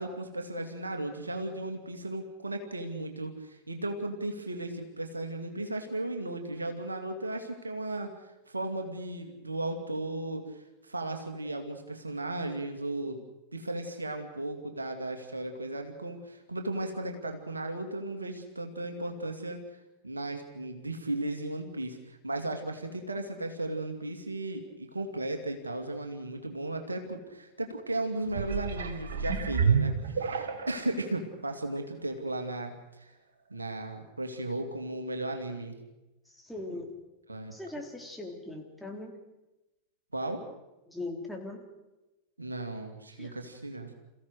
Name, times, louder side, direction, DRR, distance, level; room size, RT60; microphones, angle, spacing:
voice 1, 0.0-8.1 8.5-13.2 13.5-19.6 20.0-33.1 33.5-35.8 36.7-36.8 37.3-37.5 40.1-40.4 42.4-43.9, right 2 dB, 85° right, 4 dB, 2.5 m, -35 dB
sound 1, 28.3-30.9 31.5-31.6, right 6 dB, 65° right, 1.9 m, -29 dB
voice 2, 36.3-36.9 37.5-39.1 40.9-41.6 43.2-43.3, left 2 dB, 5° left, 1 dB, 3.7 m, -40 dB
28.0 x 16.0 x 6.6 m, 1.0 s
figure-of-eight pair, 90°, 0 cm